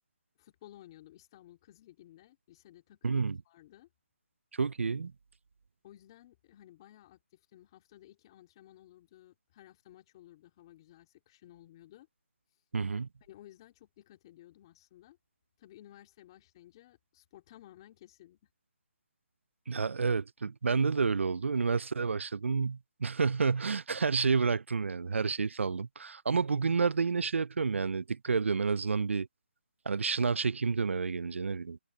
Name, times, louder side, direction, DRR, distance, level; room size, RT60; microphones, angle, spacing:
voice 1, 0.4-3.9 5.8-12.1 13.3-15.2 15.6-18.4, left 13 dB, 25° left, 3.9 m, -56 dB
voice 2, 3.0-3.4 4.6-5.1 12.7-13.1 19.7-29.3 29.9-31.8, right 5 dB, 90° right, 0.4 m, -30 dB
hypercardioid pair, 170°, 7 cm